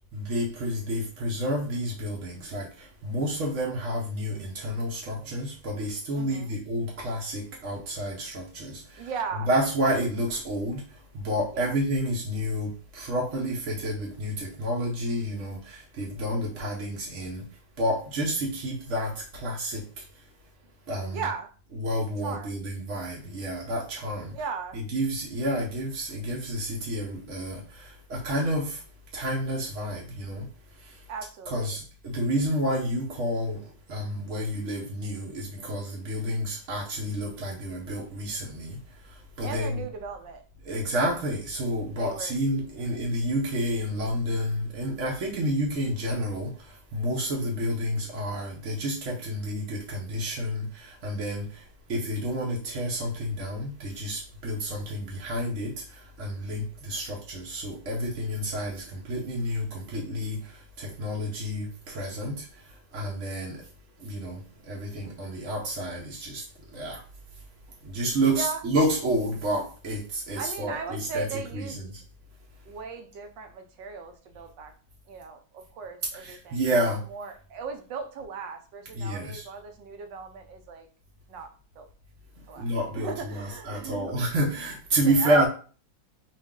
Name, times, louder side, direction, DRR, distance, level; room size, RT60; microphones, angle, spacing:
voice 1, 0.1-17.4 17.8-20.0 20.9-21.2 21.7-24.3 24.7-28.8 29.1-30.5 30.8-31.0 31.5-38.8 39.0-39.8 40.6-62.6 62.9-63.6 64.0-66.4 66.7-67.0 67.8-72.0 76.1-77.0 78.9-79.5 82.6-85.5, equal, 50° right, -3 dB, 1.0 m, -30 dB
voice 2, 6.1-6.6 9.0-9.5 11.5-11.8 21.1-21.5 22.2-22.5 24.3-24.8 31.1-31.8 39.4-40.4 42.0-42.4 68.3-68.6 70.3-71.8 72.7-74.7 75.1-76.6 77.1-80.9 81.3-81.5 81.8-81.9 82.5-82.7 82.9-84.1 85.0-85.5, right 5 dB, 70° right, 6 dB, 1.3 m, -37 dB
5.2 x 2.5 x 3.6 m, 0.39 s
omnidirectional pair, 2.1 m